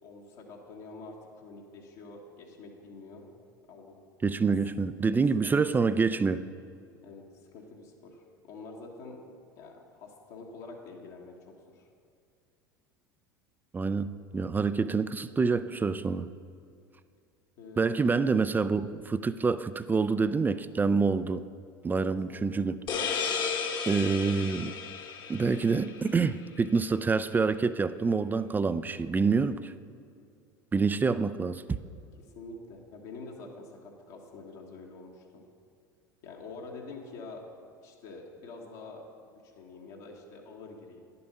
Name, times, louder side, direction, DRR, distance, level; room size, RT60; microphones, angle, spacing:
voice 1, 0.0-3.3 3.7-4.0 5.4-6.0 7.0-9.2 9.5-11.9 17.6-18.0 21.9-22.1 32.2-35.5 36.2-37.5 37.8-39.0 39.4-41.0, left 3 dB, 65° left, -1 dB, 1.3 m, -46 dB
voice 2, 4.2-6.4 13.7-16.3 17.8-21.4 21.8-23.5 23.9-24.7 25.3-29.7 30.7-31.8, right 4 dB, 15° right, 14 dB, 0.3 m, -27 dB
sound 1, 22.9-26.3, left 6 dB, 45° left, 1.1 m, -34 dB
10.5 x 6.9 x 5.3 m, 2.4 s
hypercardioid pair, 75°, 11 cm